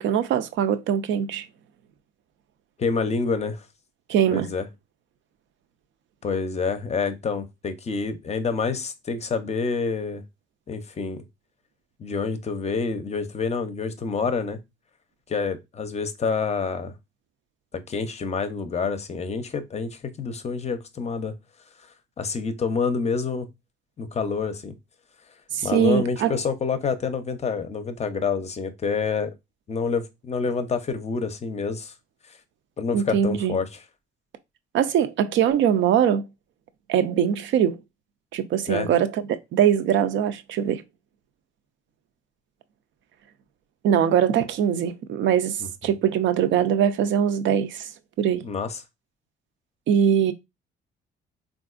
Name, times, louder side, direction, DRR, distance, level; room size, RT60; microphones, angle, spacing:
voice 1, 0.0-1.4 4.1-4.5 25.5-26.3 32.9-33.5 34.7-36.2 36.9-37.8 38.3-40.8 43.8-47.9 48.2-48.4 49.9-50.3, right 9 dB, 70° right, 0.4 m, -22 dB
voice 2, 2.8-3.6 4.3-4.7 6.2-10.2 10.7-11.2 12.0-14.6 15.3-16.9 17.9-21.3 22.2-23.5 24.0-24.8 25.6-29.3 29.7-31.9 32.8-33.8 38.7-38.9 45.6-45.7 48.4-48.8, left 5 dB, 35° left, 0.5 m, -27 dB
3.6 x 2.5 x 2.4 m
cardioid pair, 90°, 20 cm